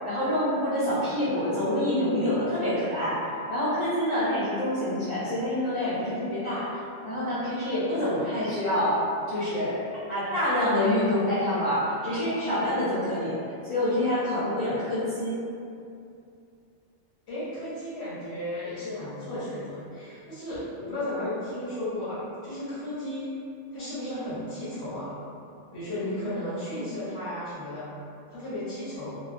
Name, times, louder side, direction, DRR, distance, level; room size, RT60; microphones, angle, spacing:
voice 1, 0.0-3.2 3.5-6.7 7.0-9.0 9.3-9.8 10.1-13.4 13.7-15.4, left 1 dB, 35° left, -14 dB, 0.5 m, -26 dB
voice 2, 17.3-23.3 23.7-25.1 25.7-27.9 28.3-29.2, left 1 dB, 65° left, -13 dB, 1.0 m, -34 dB
2.4 x 2.1 x 2.5 m, 2.5 s
omnidirectional pair, 1.2 m